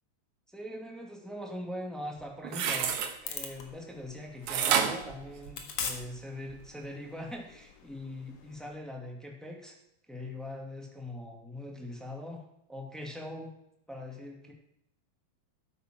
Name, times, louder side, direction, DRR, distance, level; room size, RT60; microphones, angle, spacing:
voice 1, 0.5-9.7 10.1-12.4 12.7-13.5 13.9-14.5, left 1 dB, ahead, 0 dB, 1.5 m, -42 dB
sound 1, 2.2-3.1 4.5-6.0 6.5-6.6, right 7 dB, 65° right, 2.4 m, -29 dB
sound 2, 3.2-8.8, left 6 dB, 60° left, 2.7 m, -43 dB
13.0 x 8.6 x 6.3 m, 0.79 s
omnidirectional pair, 4.1 m